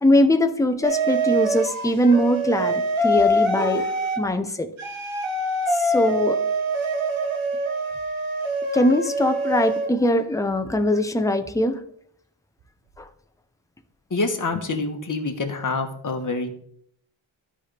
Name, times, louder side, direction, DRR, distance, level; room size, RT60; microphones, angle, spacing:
voice 1, 0.0-4.7 5.7-6.4 8.7-11.8 13.0-13.1, left 1 dB, 5° left, 8 dB, 0.7 m, -21 dB
sound 1, 0.8-4.2 4.8-9.9, right 1 dB, 80° right, 1.3 m, -24 dB
voice 2, 14.1-16.5, left 3 dB, 40° left, 4 dB, 1.2 m, -26 dB
13.0 x 5.0 x 3.4 m, 0.66 s
wide cardioid pair, 95°, 47 cm